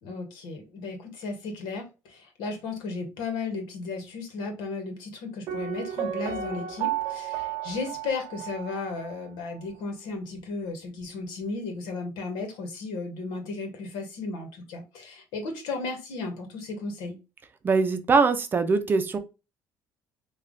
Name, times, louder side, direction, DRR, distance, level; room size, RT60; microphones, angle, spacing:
voice 1, 0.0-17.2, left 3 dB, 80° left, 1.3 m, -35 dB
Piano, 5.5-9.2 9.5-9.6, right 10 dB, 65° right, 0.8 m, -33 dB
voice 2, 17.6-19.2, right 4 dB, 25° right, 0.6 m, -22 dB
3.3 x 2.4 x 3.7 m
cardioid pair, 120°, 7 cm